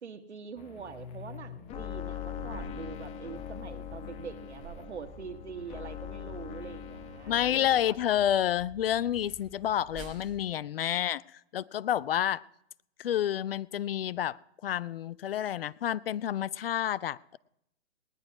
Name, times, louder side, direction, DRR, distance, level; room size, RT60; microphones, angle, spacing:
voice 1, 0.0-8.0, right 6 dB, 80° right, 8 dB, 1.6 m, -44 dB
sound 1, 0.6-7.6, left 9 dB, 20° left, 1.0 m, -42 dB
sound 2, 2.4-10.4, right 6 dB, 20° right, 1.7 m, -51 dB
voice 2, 7.3-11.2 11.5-12.4 13.0-17.4, left 11 dB, 60° left, 21 dB, 0.5 m, -29 dB
19.0 x 10.5 x 4.7 m, 0.78 s
hypercardioid pair, 135°, 33 cm